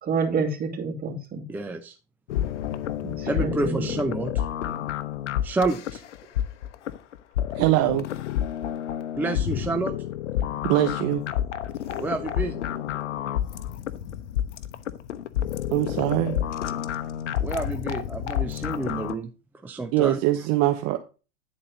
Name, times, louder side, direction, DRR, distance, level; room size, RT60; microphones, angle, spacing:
voice 1, 0.0-1.4 3.0-3.9, right 4 dB, 25° right, 0 dB, 2.6 m, -28 dB
voice 2, 1.5-2.0 3.3-4.5 5.4-6.0 9.2-9.9 12.0-12.6 17.4-19.3 19.6-20.2, right 3 dB, 5° right, 6 dB, 0.4 m, -29 dB
sound 1, 2.3-19.1, left 11 dB, 75° left, 0.8 m, -29 dB
voice 3, 7.5-8.0 10.6-11.2 15.7-16.3 19.9-21.2, right 16 dB, 45° right, 7 dB, 0.9 m, -22 dB
10.5 x 4.3 x 5.0 m, 0.33 s
hypercardioid pair, 110°, 36 cm